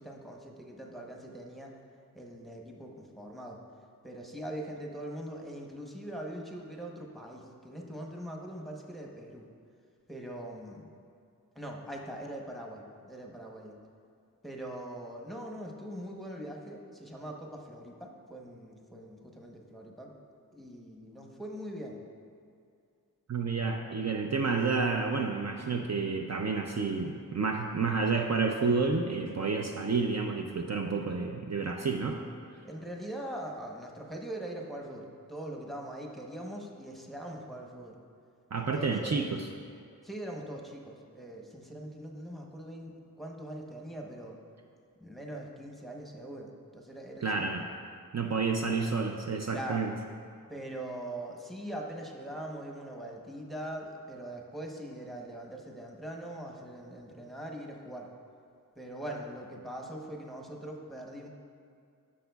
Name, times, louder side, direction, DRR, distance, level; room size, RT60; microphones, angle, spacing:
voice 1, 0.0-1.7 2.1-3.6 4.0-9.5 10.1-10.8 11.5-13.8 14.4-20.1 20.5-22.0 32.6-38.0 38.6-39.3 40.0-44.4 45.0-47.5 49.5-49.9 50.5-58.1 58.8-61.3, right 1 dB, ahead, -1 dB, 0.9 m, -42 dB
voice 2, 23.3-32.2 38.5-39.5 47.2-47.6 48.1-49.9, right 4 dB, 50° right, 2 dB, 0.4 m, -30 dB
12.0 x 6.3 x 2.3 m, 2.3 s
wide cardioid pair, 50°, 35 cm